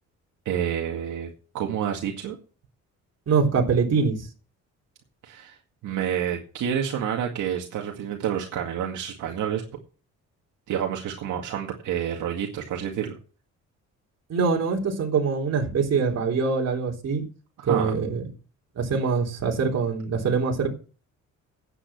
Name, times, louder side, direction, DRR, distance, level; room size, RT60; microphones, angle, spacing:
voice 1, 0.5-1.3 1.5-2.4 5.2-5.6 5.8-9.6 10.7-13.1 17.6-17.9, right 9 dB, 80° right, 2.1 m, -28 dB
voice 2, 3.3-4.2 14.3-17.2 17.6-18.2 18.8-20.7, right 5 dB, 55° right, 3.6 m, -24 dB
10.0 x 8.9 x 6.1 m
cardioid pair, 90°, 30 cm